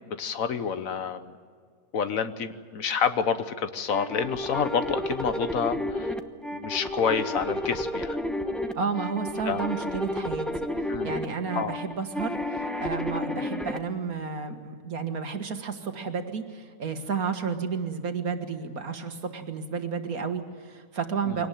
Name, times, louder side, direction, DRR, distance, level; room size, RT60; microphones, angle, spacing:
voice 1, 0.1-1.4 1.9-6.1 6.5-8.2 9.4-9.6 10.9-11.1 11.5-11.8 21.3-21.4, left 6 dB, 65° left, 11 dB, 1.4 m, -28 dB
sound 1, 3.9-13.8, left 1 dB, ahead, 0.9 m, -31 dB
voice 2, 8.8-10.5 11.0-21.5, right 5 dB, 75° right, 7 dB, 2.1 m, -32 dB
23.5 x 18.5 x 9.1 m, 2.1 s
omnidirectional pair, 1.5 m